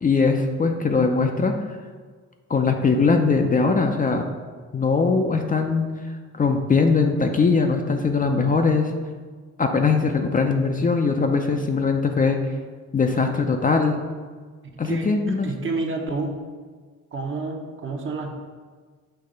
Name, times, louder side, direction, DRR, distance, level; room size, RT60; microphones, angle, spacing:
voice 1, 0.0-1.5 2.5-4.3 4.7-5.9 6.3-8.9 9.6-12.4 12.9-14.0 14.8-15.5, left 4 dB, 30° left, 4 dB, 0.5 m, -21 dB
voice 2, 14.8-16.4 17.1-18.3, right 3 dB, 40° right, 2 dB, 0.9 m, -29 dB
6.7 x 2.9 x 5.2 m, 1.5 s
cardioid pair, 90°, 30 cm